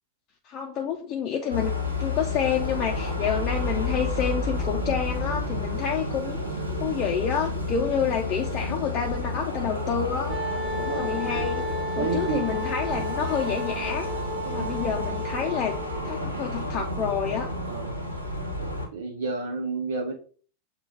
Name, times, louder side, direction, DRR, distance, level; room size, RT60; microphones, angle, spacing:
voice 1, 0.4-1.7 2.0-6.4 6.8-10.4 10.8-11.7 11.9-14.1 14.5-15.8 16.0-17.5, left 7 dB, 35° left, 1 dB, 0.6 m, -28 dB
sound 1, 1.5-18.9, left 2 dB, 85° right, 1.1 m, -30 dB
Wind instrument woodwind instrument, 10.3-16.3, equal, 5° right, 1.1 m, -34 dB
voice 2, 10.9-11.2 12.0-12.5 14.6-14.8 17.7-18.0 18.9-20.1, right 4 dB, 60° right, 2 dB, 0.6 m, -30 dB
6.8 x 2.3 x 3.3 m, 0.42 s
figure-of-eight pair, 90°, 0 cm